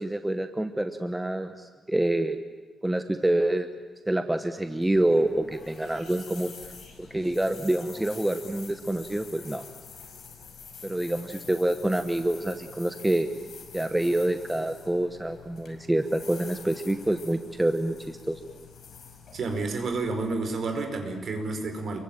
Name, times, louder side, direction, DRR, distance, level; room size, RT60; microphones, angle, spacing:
voice 1, 0.0-2.4 2.8-3.7 4.1-6.5 7.0-9.6 10.8-13.3 13.7-18.4, right 1 dB, 5° right, 8 dB, 1.0 m, -27 dB
sound 1, 4.6-20.8, left 6 dB, 50° left, 5.9 m, -47 dB
voice 2, 19.3-22.0, right 3 dB, 50° right, 5 dB, 4.9 m, -30 dB
28.0 x 23.0 x 9.0 m, 1.4 s
wide cardioid pair, 160°, 0 cm